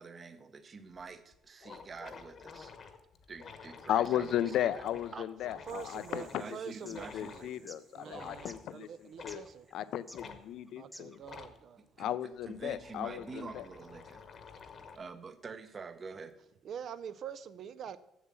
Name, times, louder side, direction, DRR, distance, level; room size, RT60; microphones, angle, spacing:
voice 1, 0.0-2.7 3.3-4.8 5.1-5.3 6.2-7.7 8.0-8.4 12.0-14.2 14.6-16.3, right 4 dB, 30° right, 11 dB, 0.8 m, -47 dB
sound 1, 0.9-1.0 1.3-1.4 1.6-6.4 6.9-7.5 8.1-8.6 9.2-9.4 10.1-10.4 11.2-11.6 12.3-15.1, left 5 dB, 45° left, 1.0 m, -50 dB
voice 2, 3.9-6.4 6.8-8.9 9.2-9.4 9.7-11.2 12.0-13.6, left 11 dB, 65° left, 16 dB, 0.5 m, -35 dB
sound 2, 4.7-11.4, equal, ahead, 0.6 m, -56 dB
voice 3, 5.1-7.1 7.9-9.7 10.8-11.8 16.6-18.0, right 8 dB, 55° right, 14 dB, 0.4 m, -45 dB
sound 3, 5.7-10.4, right 4 dB, 85° right, 3.5 m, -65 dB
7.3 x 7.1 x 7.4 m, 0.88 s
cardioid pair, 120°, 0 cm